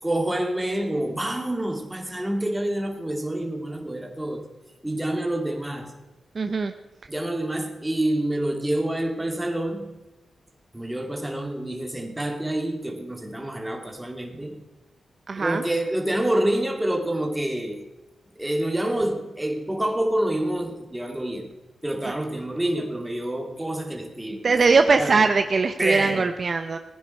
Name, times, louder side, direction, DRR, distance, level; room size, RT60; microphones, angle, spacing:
voice 1, 0.0-4.5 4.8-5.9 7.1-10.0 10.7-14.6 15.4-17.9 18.4-21.5 21.8-25.3 25.8-26.3, right 1 dB, 10° right, 2 dB, 2.6 m, -27 dB
voice 2, 6.3-6.7 15.3-15.6 24.4-26.8, right 4 dB, 50° right, 8 dB, 0.8 m, -21 dB
18.5 x 10.0 x 4.5 m, 1.1 s
cardioid pair, 75°, 0 cm